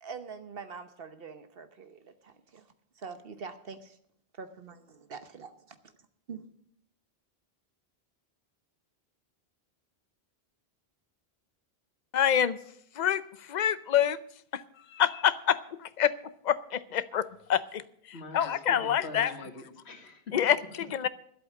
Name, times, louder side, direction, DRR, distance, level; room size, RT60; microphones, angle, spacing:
voice 1, 0.0-2.7 3.0-4.0 4.3-4.8 5.1-5.8 6.3-6.5, right 5 dB, 65° right, 9 dB, 1.2 m, -44 dB
voice 2, 12.1-12.6 12.9-14.2 14.5-14.6 14.9-16.1 16.4-17.8 18.3-19.3 20.3-21.1, left 9 dB, 50° left, 15 dB, 0.7 m, -27 dB
voice 3, 18.1-20.3, left 2 dB, 85° left, 5 dB, 2.0 m, -44 dB
11.5 x 8.2 x 8.4 m, 0.69 s
omnidirectional pair, 1.1 m